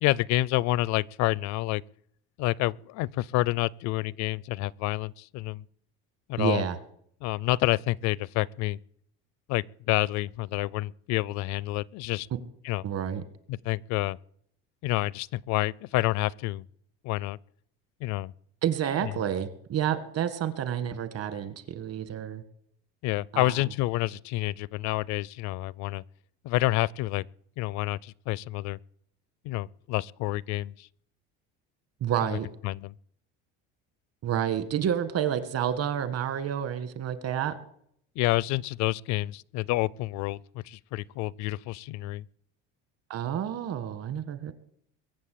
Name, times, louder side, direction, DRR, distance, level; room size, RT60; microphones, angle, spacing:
voice 1, 0.0-1.8 2.4-5.6 6.3-6.6 7.2-8.8 9.5-12.3 12.6-12.8 13.5-14.2 14.8-16.7 17.0-17.4 18.0-18.3 19.0-19.1 23.0-26.0 26.4-27.2 27.6-28.8 29.4-30.9 32.3-32.4 32.6-32.9 38.2-42.2, left 17 dB, 65° left, 0.5 m, -28 dB
voice 2, 6.4-6.8 12.8-13.2 18.6-22.4 23.3-23.6 32.0-32.5 34.2-37.6 43.1-44.5, right 9 dB, 50° right, 1.9 m, -29 dB
22.5 x 7.5 x 8.6 m
cardioid pair, 125°, 31 cm